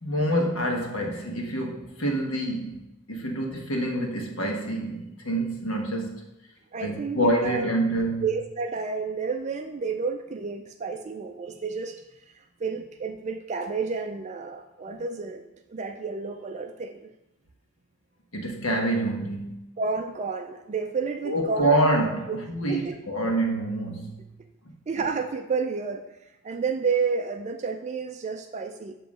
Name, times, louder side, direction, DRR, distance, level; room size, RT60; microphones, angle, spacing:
voice 1, 0.0-6.2 6.8-8.2 18.3-19.7 21.2-24.3, right 1 dB, 65° left, 1 dB, 1.2 m, -27 dB
voice 2, 6.7-7.7 8.2-12.0 12.4-15.4 15.7-17.1 19.8-21.8 22.3-22.4 22.7-22.9 24.9-26.1 26.4-29.0, right 5 dB, 30° right, 5 dB, 0.3 m, -30 dB
7.2 x 3.0 x 6.0 m, 0.93 s
head